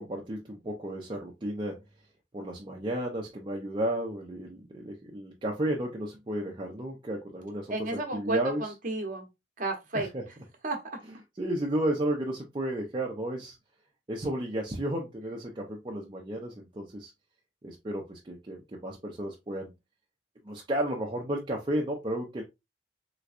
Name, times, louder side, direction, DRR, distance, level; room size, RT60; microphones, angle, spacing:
voice 1, 0.0-1.8 2.3-8.6 9.9-10.2 11.4-13.6 14.1-17.1 17.6-19.7 20.4-22.4, right 1 dB, 25° right, 0.6 m, -33 dB
voice 2, 7.7-9.3 9.6-10.1 10.6-10.8, right 2 dB, 45° right, 1.0 m, -32 dB
3.4 x 3.0 x 2.4 m
head